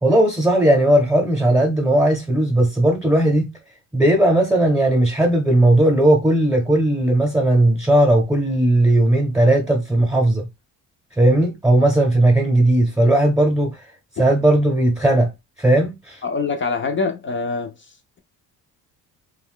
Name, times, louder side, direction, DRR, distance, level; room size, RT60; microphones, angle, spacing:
voice 1, 0.0-3.5 3.9-10.5 11.2-13.8 14.2-15.3 15.6-16.2, right 1 dB, 5° right, 0.7 m, -17 dB
voice 2, 16.2-17.7, left 4 dB, 35° left, 0.4 m, -24 dB
2.5 x 2.2 x 3.6 m
cardioid pair, 130°, 38 cm